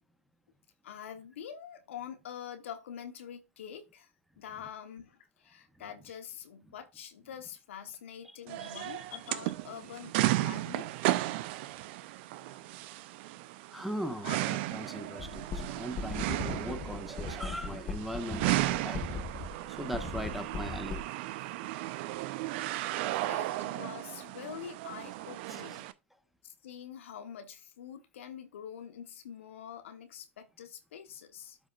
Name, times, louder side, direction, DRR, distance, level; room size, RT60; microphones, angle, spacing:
voice 1, 0.8-4.1 4.4-10.1 10.4-10.9 12.4-12.9 14.2-14.4 23.3-25.9 26.4-31.6, left 8 dB, 70° left, 1.2 m, -45 dB
voice 2, 8.2-8.8 13.7-19.0 19.7-21.0 25.5-25.6, equal, ahead, 1.1 m, -40 dB
sound 1, 8.5-25.9, right 16 dB, 55° right, 0.5 m, -35 dB
sound 2, 15.2-21.0, left 5 dB, 30° left, 1.1 m, -39 dB
12.5 x 5.1 x 2.4 m
hypercardioid pair, 100°, 7 cm